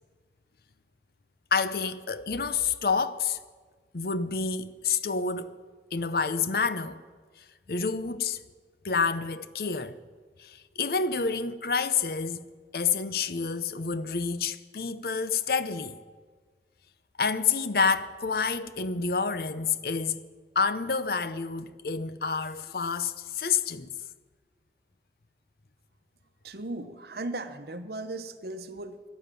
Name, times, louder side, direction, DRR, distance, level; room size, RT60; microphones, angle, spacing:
voice 1, 1.5-3.4 3.9-5.6 5.9-7.0 7.4-8.4 8.8-10.0 10.4-12.4 12.7-16.0 17.2-20.2 20.6-23.9, left 5 dB, 55° left, 0.7 m, -28 dB
voice 2, 26.4-29.0, right 2 dB, 65° right, 0.9 m, -37 dB
12.0 x 11.5 x 9.0 m
head